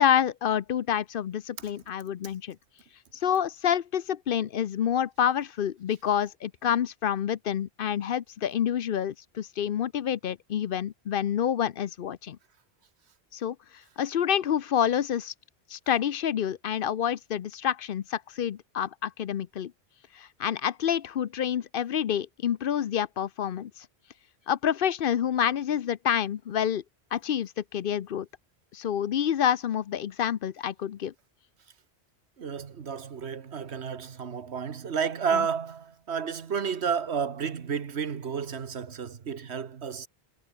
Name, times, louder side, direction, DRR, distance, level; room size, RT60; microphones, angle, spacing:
voice 1, 0.0-2.6 3.1-12.4 13.3-13.6 14.0-15.3 15.7-19.7 20.1-23.9 24.5-26.8 27.1-28.3 28.7-31.1 35.3-35.4, left 9 dB, 60° left, 0.8 m, -28 dB
voice 2, 32.4-40.1, right 6 dB, 90° right, 1.5 m, -31 dB
omnidirectional pair, 1.1 m